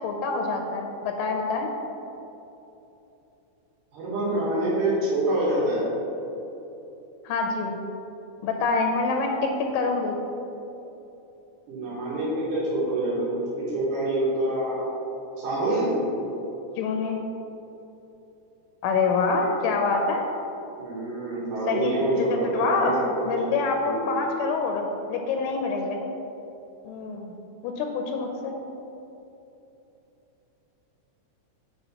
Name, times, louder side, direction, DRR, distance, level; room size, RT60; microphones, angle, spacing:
voice 1, 0.0-1.7 7.3-7.8 8.4-10.2 16.8-17.2 18.8-20.2 21.7-22.9 23.3-26.0 26.8-27.3 27.6-28.5, left 4 dB, 85° left, 3 dB, 2.2 m, -26 dB
voice 2, 3.9-5.8 11.7-15.0 15.4-16.0 20.8-24.2, right 1 dB, 80° right, -8 dB, 3.5 m, -26 dB
6.9 x 4.7 x 5.6 m, 3.0 s
omnidirectional pair, 3.7 m